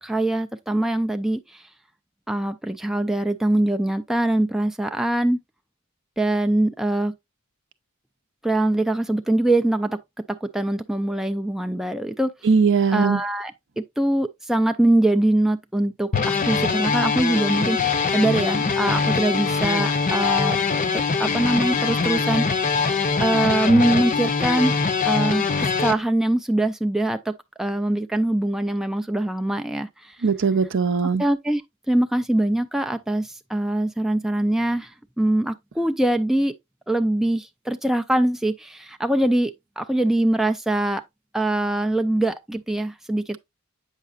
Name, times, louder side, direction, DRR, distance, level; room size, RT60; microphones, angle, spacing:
voice 1, 0.0-1.6 2.3-5.4 6.2-7.1 8.4-10.0 10.3-12.3 12.9-20.6 20.9-22.8 23.2-24.7 25.0-30.2 31.2-31.6 31.9-36.5 36.9-41.0 41.3-43.4, right 1 dB, ahead, 0.3 m, -23 dB
voice 2, 12.4-13.2 30.2-31.2, right 5 dB, 60° right, 0.6 m, -20 dB
sound 1, 16.1-25.9, left 5 dB, 40° left, 0.6 m, -23 dB
8.2 x 5.7 x 2.4 m
head